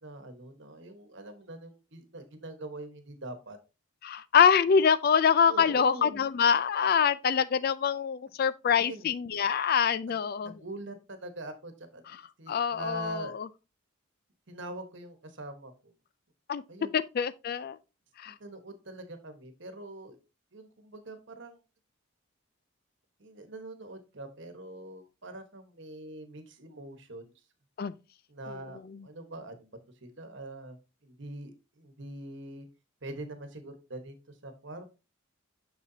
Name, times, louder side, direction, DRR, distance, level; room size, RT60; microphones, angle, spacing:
voice 1, 0.0-3.6 5.5-6.3 8.8-9.1 10.1-12.0 12.4-13.4 14.5-15.9 16.7-17.0 18.4-20.2 20.5-21.6 23.2-27.3 28.3-32.7 33.0-34.2 34.4-34.9, right 2 dB, 60° right, 1.2 m, -43 dB
voice 2, 4.0-10.6 12.5-13.5 16.5-16.6 16.9-17.8 18.2-18.3 27.8-27.9 28.9-29.0, left 7 dB, 45° left, 0.3 m, -25 dB
6.8 x 6.6 x 2.7 m
head